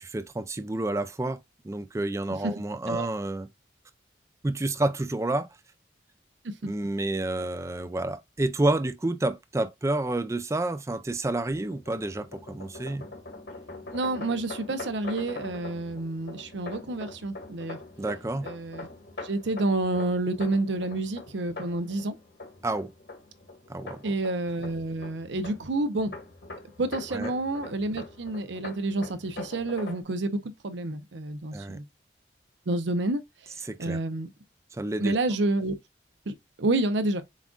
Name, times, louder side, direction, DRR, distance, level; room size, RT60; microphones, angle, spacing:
voice 1, 0.0-1.4 1.6-3.5 4.4-5.5 6.6-13.1 18.0-18.5 22.6-22.9 23.7-24.0 27.1-27.3 31.5-31.8 33.6-34.0 34.7-35.1, right 2 dB, 15° right, 0.4 m, -29 dB
sound 1, 11.5-30.0, left 2 dB, 75° left, 1.8 m, -43 dB
voice 2, 13.9-17.8 18.4-18.9 19.2-22.2 24.0-26.1 26.8-31.8 32.7-33.2 33.8-34.3 35.0-35.7 36.3-37.2, right 2 dB, 80° right, 0.6 m, -29 dB
7.2 x 2.5 x 2.3 m
head